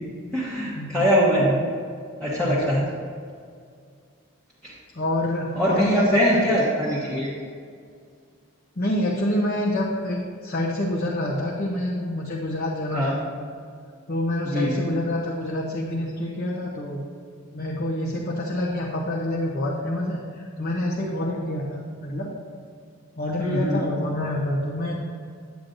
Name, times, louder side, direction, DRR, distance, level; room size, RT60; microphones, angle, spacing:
voice 1, 0.3-1.5 2.2-2.9 4.6-4.7 5.5-7.3 12.9-13.1 14.4-14.9 23.4-23.8, equal, 5° left, -10 dB, 1.1 m, -22 dB
voice 2, 2.4-2.8 4.9-6.5 8.8-13.2 14.1-17.0 17.5-22.3 23.2-25.0, left 1 dB, 45° left, -4 dB, 0.8 m, -27 dB
9.2 x 8.6 x 2.6 m, 2.2 s
head